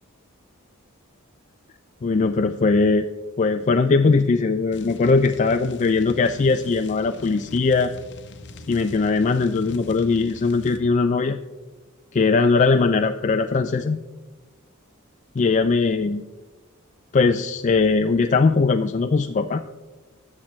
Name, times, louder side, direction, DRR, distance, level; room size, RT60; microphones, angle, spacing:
voice 1, 2.0-3.1 3.4-7.9 8.7-11.4 12.1-14.0 15.4-16.2 17.1-19.6, left 4 dB, 35° left, 6 dB, 0.4 m, -20 dB
sound 1, 4.7-10.8, left 2 dB, 55° left, 0.8 m, -42 dB
20.0 x 7.3 x 3.2 m, 1.2 s
head